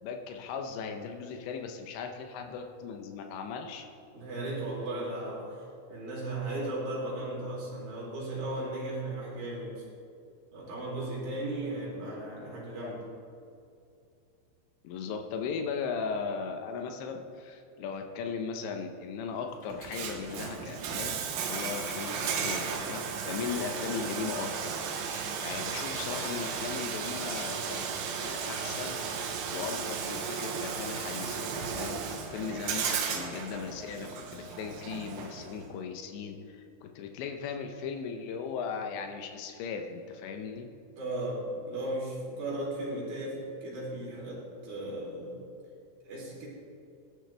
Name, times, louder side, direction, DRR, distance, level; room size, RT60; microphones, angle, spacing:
voice 1, 0.0-3.9 12.8-12.9 14.8-21.2 21.5-24.7 25.0-25.1 25.4-27.9 28.2-29.0 29.5-40.7, left 6 dB, 80° left, 4 dB, 3.1 m, -37 dB
voice 2, 4.1-9.8 10.5-13.0 41.0-45.4 46.0-46.5, right 1 dB, 55° right, -6 dB, 5.0 m, -36 dB
Bathtub (filling or washing), 19.7-35.7, right 6 dB, 80° right, 3.3 m, -35 dB
sound 1, 22.4-23.1 23.4-24.2 24.5-24.9 25.1-26.7 27.0-27.9 28.2-30.0 30.3-31.3, equal, 15° left, 1.8 m, -51 dB
18.5 x 11.5 x 3.4 m, 2.5 s
omnidirectional pair, 5.3 m